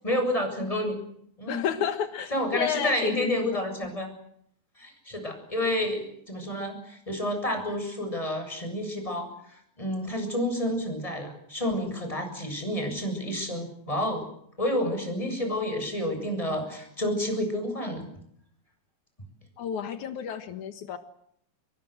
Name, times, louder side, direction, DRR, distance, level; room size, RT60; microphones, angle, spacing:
voice 1, 0.0-1.0 1.4-1.7 2.3-4.1 4.8-14.2 14.6-18.1, left 1 dB, 10° left, 4 dB, 7.7 m, -30 dB
voice 2, 1.5-3.6 19.6-21.0, left 8 dB, 80° left, 8 dB, 3.0 m, -31 dB
26.5 x 23.0 x 7.9 m, 0.70 s
omnidirectional pair, 3.4 m